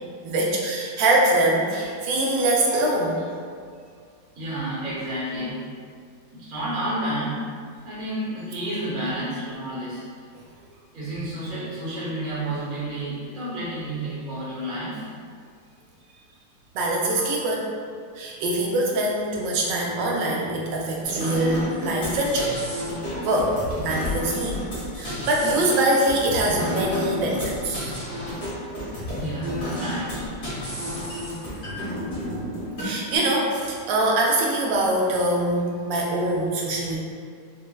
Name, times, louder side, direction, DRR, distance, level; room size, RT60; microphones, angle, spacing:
voice 1, 0.2-3.2 16.7-17.7 18.2-22.5 23.2-23.6 23.8-24.6 25.0-27.9 32.8-37.0, right 1 dB, 80° right, -2 dB, 1.3 m, -23 dB
voice 2, 4.3-5.6 6.3-7.4 7.8-10.0 10.9-15.1 29.2-30.3, right 1 dB, 35° right, -9 dB, 0.9 m, -30 dB
sound 1, 21.0-33.2, left 1 dB, 50° left, 1.6 m, -31 dB
4.5 x 2.1 x 2.2 m, 2.1 s
omnidirectional pair, 2.0 m